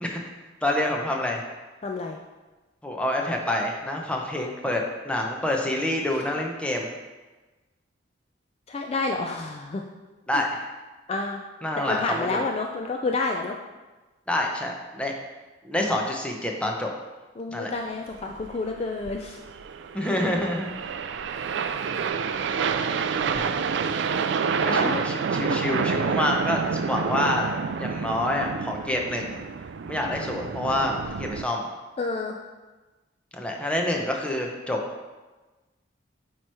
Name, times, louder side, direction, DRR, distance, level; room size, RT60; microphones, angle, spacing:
voice 1, 0.6-1.4 2.8-6.9 10.3-10.7 11.6-12.4 14.3-15.1 15.6-16.9 17.5-17.7 19.9-20.9 23.1-23.6 24.6-27.5 27.8-29.4 29.9-31.6 33.3-34.8, left 1 dB, 5° left, 0 dB, 0.7 m, -27 dB
voice 2, 1.8-2.2 8.7-9.8 11.1-11.4 11.9-13.6 17.4-19.4 24.7-25.0 32.0-32.4, left 3 dB, 35° left, 2 dB, 0.4 m, -29 dB
sound 1, 18.1-31.4, right 6 dB, 65° right, 0.3 m, -28 dB
8.6 x 3.1 x 4.7 m, 1.2 s
head